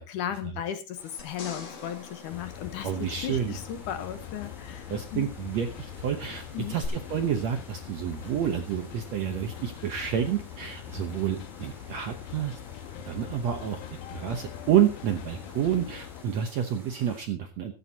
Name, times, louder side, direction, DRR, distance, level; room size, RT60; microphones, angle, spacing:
voice 1, 0.0-2.9 3.2-4.9 5.1-5.3 6.5-6.8, left 10 dB, 65° left, 8 dB, 2.4 m, -35 dB
sound 1, 0.9-17.2, equal, ahead, 5.5 m, -53 dB
sound 2, 1.2-3.7 6.8-6.9, left 6 dB, 45° left, 2.8 m, -43 dB
sound 3, 2.3-16.2, left 10 dB, 80° left, 2.8 m, -42 dB
voice 2, 2.8-3.6 4.9-12.6 13.0-13.8 14.1-17.8, right 9 dB, 70° right, 6 dB, 1.7 m, -29 dB
15.5 x 14.0 x 2.9 m, 0.31 s
omnidirectional pair, 4.3 m